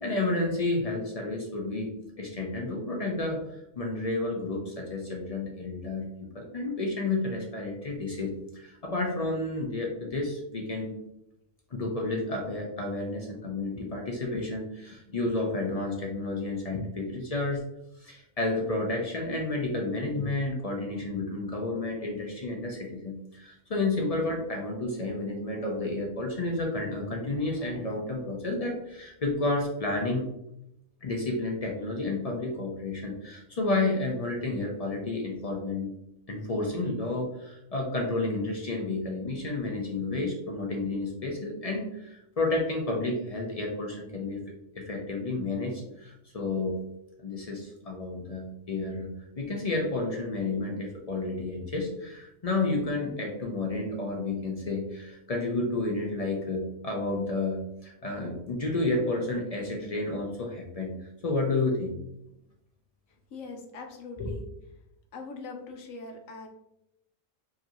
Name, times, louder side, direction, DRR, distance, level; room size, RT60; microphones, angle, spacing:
voice 1, 0.0-3.4 3.8-10.9 11.7-17.6 18.0-30.2 31.0-35.9 36.3-44.4 44.7-46.8 47.2-60.9 61.2-62.0 64.2-64.4, left 2 dB, 55° left, 0 dB, 0.4 m, -31 dB
voice 2, 63.3-64.4 65.1-66.5, left 3 dB, 75° left, 2 dB, 1.1 m, -41 dB
4.8 x 2.6 x 2.9 m, 0.83 s
omnidirectional pair, 1.4 m